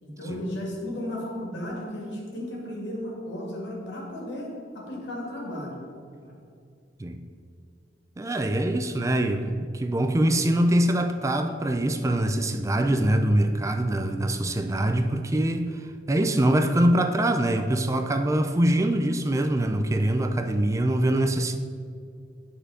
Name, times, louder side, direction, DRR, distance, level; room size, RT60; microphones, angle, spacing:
voice 1, 0.0-5.8 6.2-6.4, left 1 dB, 85° left, -2 dB, 2.1 m, -34 dB
voice 2, 8.2-15.8 16.1-21.6, right 1 dB, 15° right, 7 dB, 0.4 m, -24 dB
10.5 x 4.5 x 4.9 m, 2.2 s
head